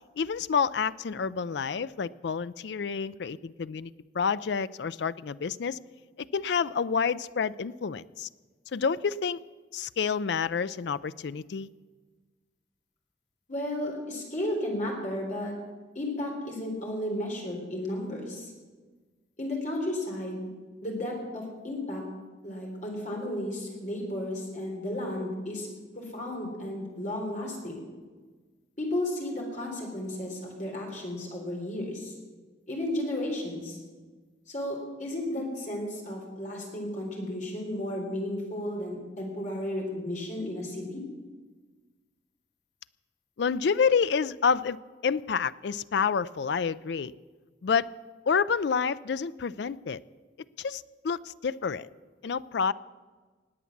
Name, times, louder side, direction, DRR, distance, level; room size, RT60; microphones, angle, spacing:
voice 1, 0.2-5.8 6.2-8.3 8.7-9.4 9.7-11.7 43.4-44.8 45.0-47.1 47.6-47.9 48.3-50.0 50.6-51.9 52.2-52.7, left 6 dB, 65° left, 16 dB, 0.4 m, -28 dB
voice 2, 13.5-15.5 15.9-18.5 19.4-20.4 20.8-22.0 22.4-25.7 26.0-27.8 28.8-32.1 32.7-33.8 34.5-41.0, left 1 dB, 40° left, -1 dB, 3.8 m, -33 dB
19.0 x 8.3 x 7.2 m, 1.4 s
head